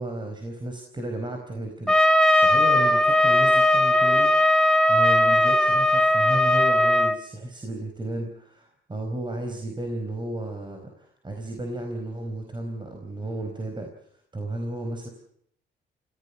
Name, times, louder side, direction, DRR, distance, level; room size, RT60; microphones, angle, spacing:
voice 1, 0.0-13.9 14.3-15.1, right 1 dB, 25° right, 4 dB, 4.5 m, -33 dB
Trumpet, 1.9-7.2, left 1 dB, 5° left, 2.7 m, -19 dB
25.0 x 16.5 x 8.2 m, 0.68 s
cardioid pair, 90°, 20 cm